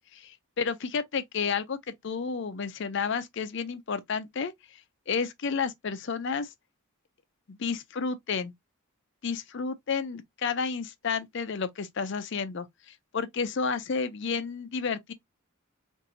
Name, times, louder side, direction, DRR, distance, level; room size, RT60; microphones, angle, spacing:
voice 1, 0.1-1.8 2.0-4.5 5.1-6.5 7.5-8.5 9.2-12.7 13.1-15.1, left 5 dB, 55° left, 0.5 m, -31 dB
4.1 x 2.6 x 2.6 m
head